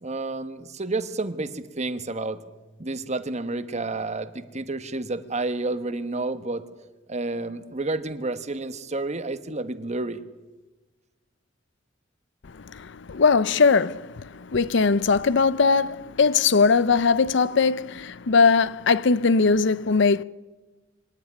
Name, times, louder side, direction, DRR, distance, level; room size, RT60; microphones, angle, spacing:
voice 1, 0.0-2.4 2.8-6.6 7.1-10.2, right 2 dB, 35° right, 1.3 m, -30 dB
voice 2, 13.1-14.1 14.5-20.2, left 4 dB, 70° left, 0.6 m, -20 dB
25.5 x 12.0 x 9.8 m
head